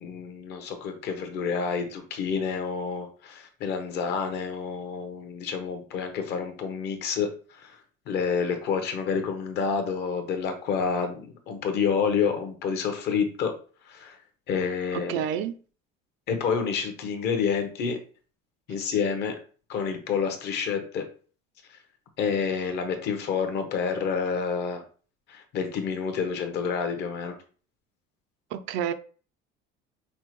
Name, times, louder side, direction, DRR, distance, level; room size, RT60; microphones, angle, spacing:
voice 1, 0.0-7.8 8.1-13.5 13.9-14.2 14.5-15.1 16.3-18.0 18.7-19.3 19.7-21.0 22.2-24.8 25.3-27.3, left 6 dB, 55° left, 0.8 m, -28 dB
voice 2, 14.9-15.5 28.5-28.9, right 9 dB, 65° right, 0.5 m, -29 dB
5.5 x 2.1 x 3.0 m
cardioid pair, 145°, 21 cm